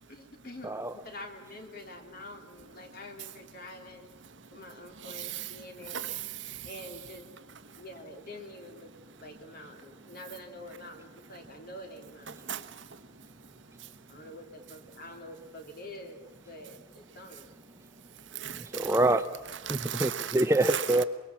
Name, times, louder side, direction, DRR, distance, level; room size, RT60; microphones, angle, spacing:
voice 1, 0.1-4.1 4.5-6.1 6.6-7.2 7.8-8.9 9.2-12.4 14.1-17.5, left 1 dB, 50° left, 3.3 m, -46 dB
voice 2, 0.6-0.9 18.4-19.3 19.7-21.0, right 2 dB, 15° right, 0.7 m, -26 dB
voice 3, 5.0-5.5 5.9-6.7 12.4-12.9 18.3-18.9 19.7-20.3 20.7-20.8, right 10 dB, 65° right, 1.2 m, -36 dB
24.5 x 22.5 x 7.2 m
head